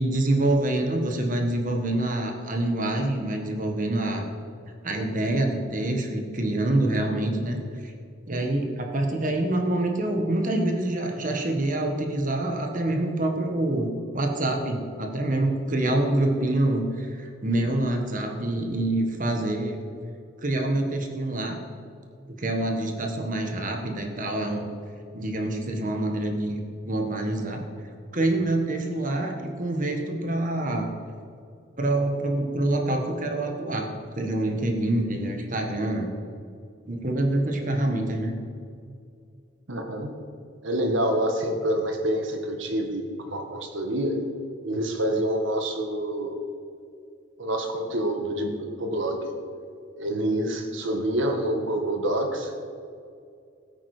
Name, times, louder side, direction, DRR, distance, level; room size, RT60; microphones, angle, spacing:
voice 1, 0.0-4.2 4.8-7.6 7.8-7.9 8.3-19.8 20.4-21.6 22.4-24.7 25.1-27.6 28.1-30.9 31.8-33.9 34.1-36.1 36.9-38.4, right 1 dB, 40° right, 3 dB, 1.4 m, -26 dB
voice 2, 39.7-40.1 40.6-44.2 44.6-46.4 47.4-49.3 50.0-52.5, right 1 dB, 70° right, 3 dB, 1.5 m, -27 dB
15.5 x 9.0 x 4.9 m, 2.3 s
head